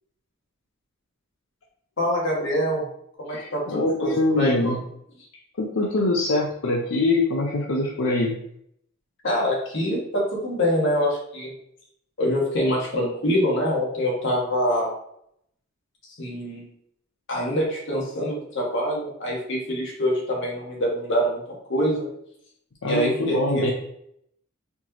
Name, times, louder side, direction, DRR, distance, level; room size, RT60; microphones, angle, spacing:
voice 1, 2.0-2.9 3.2-4.7 9.2-11.5 12.2-14.9 16.2-16.7 17.3-21.4 21.7-22.1 22.8-23.7, equal, 60° left, -3 dB, 1.4 m, -25 dB
voice 2, 3.3-4.8 5.6-8.4 22.8-23.7, left 2 dB, 80° left, -1 dB, 0.6 m, -23 dB
4.4 x 3.0 x 2.9 m, 0.71 s
head